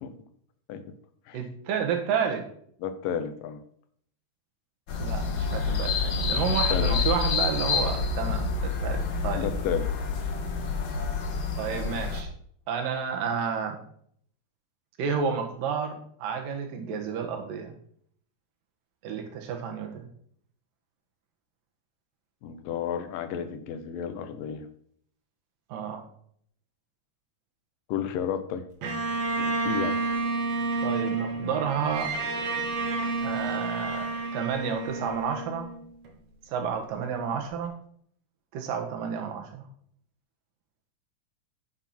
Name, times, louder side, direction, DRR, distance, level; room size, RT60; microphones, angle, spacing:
voice 1, 1.3-2.5 5.0-9.5 11.6-12.3 12.7-13.8 15.0-17.7 19.0-20.1 25.7-26.0 30.8-32.2 33.2-35.7 36.5-37.8 38.5-39.7, right 7 dB, 85° right, 4 dB, 3.1 m, -31 dB
voice 2, 2.8-3.6 6.7-7.0 9.4-9.9 22.4-24.7 27.9-28.6 29.4-30.0, left 8 dB, 85° left, 10 dB, 2.6 m, -32 dB
sound 1, 4.9-12.2, left 5 dB, 55° left, 1.4 m, -28 dB
Bowed string instrument, 28.8-36.1, right 3 dB, 60° right, 2.4 m, -30 dB
9.8 x 6.9 x 4.4 m, 0.63 s
omnidirectional pair, 3.8 m